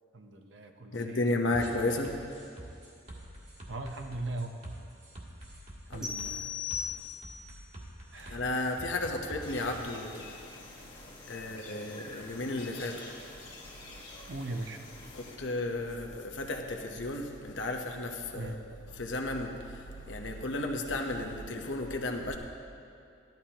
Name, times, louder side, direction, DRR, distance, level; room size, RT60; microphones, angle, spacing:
voice 1, 0.1-2.0 3.7-4.5 5.9-6.3 8.1-8.7 14.3-14.8 18.3-18.6, right 2 dB, 80° right, 5 dB, 0.9 m, -40 dB
voice 2, 0.9-2.2 5.9-6.5 8.2-10.3 11.3-13.1 15.1-18.6 18.9-22.3, left 2 dB, 90° left, 3 dB, 1.0 m, -33 dB
sound 1, 1.5-9.8, right 1 dB, 40° right, 1.7 m, -47 dB
sound 2, 6.0-7.6, left 7 dB, 5° right, 1.4 m, -37 dB
sound 3, 9.4-15.4, left 2 dB, 25° left, 1.6 m, -48 dB
14.5 x 12.0 x 3.0 m, 2.6 s
head